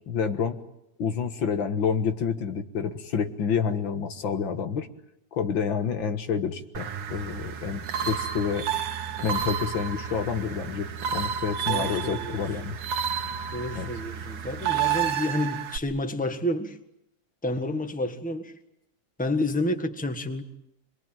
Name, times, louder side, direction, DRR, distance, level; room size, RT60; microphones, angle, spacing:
voice 1, 0.1-0.6 1.0-4.9 5.3-8.7 9.2-12.8 13.8-13.9, left 6 dB, 80° left, 2.3 m, -28 dB
sound 1, 6.7-15.8, right 9 dB, 85° right, 2.0 m, -31 dB
sound 2, 7.1-15.1, right 6 dB, 65° right, 1.9 m, -40 dB
voice 2, 11.7-12.4 13.5-16.8 17.4-18.5 19.2-20.4, left 1 dB, 5° left, 1.3 m, -29 dB
26.5 x 21.5 x 9.1 m
omnidirectional pair, 2.1 m